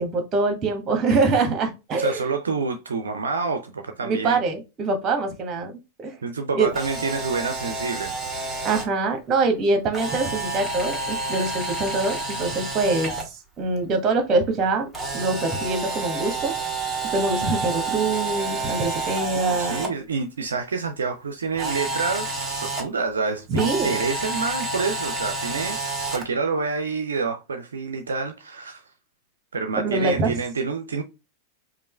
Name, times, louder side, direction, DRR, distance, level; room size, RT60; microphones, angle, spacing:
voice 1, 0.0-2.2 4.0-5.7 6.0-6.1 6.5-6.7 8.6-14.9 15.1-16.5 17.1-19.8 23.5-24.0 29.8-30.3, right 3 dB, 30° right, 1.3 m, -24 dB
voice 2, 2.0-4.4 6.2-8.1 19.3-28.8 29.5-31.0, right 4 dB, 70° right, 0.5 m, -28 dB
Camera, 6.7-8.9 9.9-13.2 14.9-19.9 21.6-22.8 23.5-26.3, right 3 dB, 5° right, 1.5 m, -29 dB
5.2 x 2.5 x 3.3 m
figure-of-eight pair, 90°, 0 cm